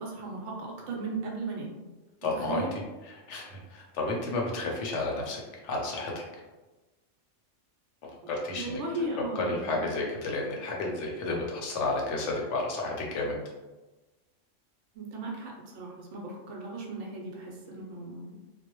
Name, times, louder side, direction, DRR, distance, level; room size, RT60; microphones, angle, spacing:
voice 1, 0.0-1.7 2.3-2.7 8.5-9.9 14.9-18.3, right 2 dB, 75° right, -1 dB, 0.9 m, -36 dB
voice 2, 2.2-6.2 8.3-8.8 9.3-13.3, left 2 dB, 75° left, -1 dB, 0.9 m, -32 dB
2.3 x 2.0 x 2.9 m, 1.2 s
omnidirectional pair, 1.3 m